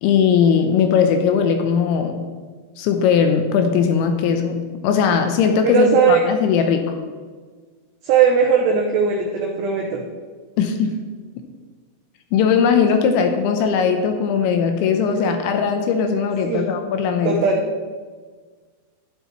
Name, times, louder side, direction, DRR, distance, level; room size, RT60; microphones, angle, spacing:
voice 1, 0.0-2.3 2.8-7.0 10.6-11.0 12.3-17.4, left 6 dB, 80° left, 6 dB, 2.8 m, -19 dB
voice 2, 5.6-6.2 8.0-10.0 16.4-16.7 17.2-17.6, right 6 dB, 80° right, 0 dB, 2.5 m, -18 dB
12.0 x 11.0 x 3.1 m, 1.5 s
omnidirectional pair, 5.9 m